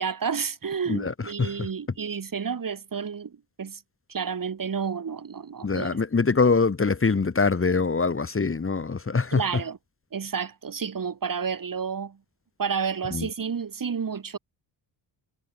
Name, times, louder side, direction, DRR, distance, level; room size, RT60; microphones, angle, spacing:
voice 1, 0.0-3.8 4.1-5.9 9.3-9.8 10.1-12.2 12.6-14.4, right 6 dB, 45° right, 4.4 m, -30 dB
voice 2, 0.9-1.7 5.6-9.4 13.1-13.3, left 4 dB, 30° left, 2.1 m, -24 dB
cardioid pair, 105°, 44 cm